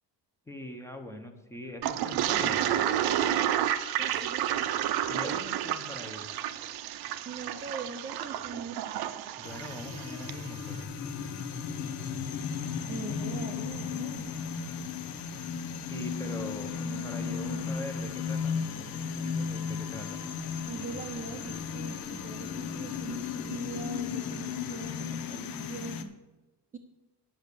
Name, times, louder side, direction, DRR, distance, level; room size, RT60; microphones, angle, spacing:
voice 1, 0.5-2.9 5.1-6.3 9.4-10.8 15.9-20.2, left 1 dB, 5° left, 5 dB, 0.9 m, -42 dB
Toilet flush, 1.8-10.4, right 11 dB, 65° right, 0.8 m, -30 dB
voice 2, 4.0-4.5 5.2-5.5 7.2-8.8 12.9-14.3 17.2-17.8 20.7-26.0 26.7-26.8, right 4 dB, 20° right, 3 dB, 0.7 m, -41 dB
sound 1, 9.4-26.0, left 6 dB, 60° left, 1.0 m, -35 dB
10.5 x 7.1 x 6.7 m, 1.1 s
cardioid pair, 175°, 40 cm